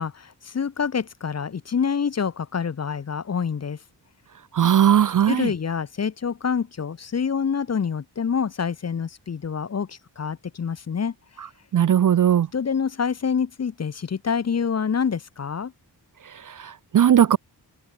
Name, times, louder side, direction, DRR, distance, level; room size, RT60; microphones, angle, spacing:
voice 1, 0.0-3.8 5.3-11.1 12.5-15.7, left 6 dB, 35° left, 0.7 m, -26 dB
voice 2, 4.5-5.5 11.7-12.5 16.5-17.4, right 9 dB, 50° right, 0.4 m, -18 dB
wide cardioid pair, 175°, 44 cm